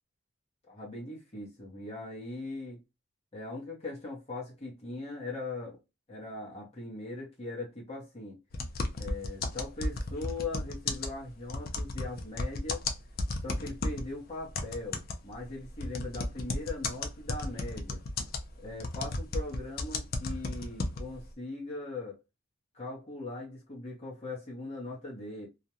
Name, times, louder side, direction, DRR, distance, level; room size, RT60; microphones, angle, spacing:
voice 1, 0.7-2.8 3.3-5.8 6.1-8.4 9.0-12.8 13.4-18.0 18.6-22.2 22.7-25.5, left 2 dB, 30° left, 0.8 m, -40 dB
sound 1, 8.5-14.1 14.5-21.2, left 2 dB, 45° left, 0.4 m, -34 dB
2.4 x 2.1 x 2.8 m
head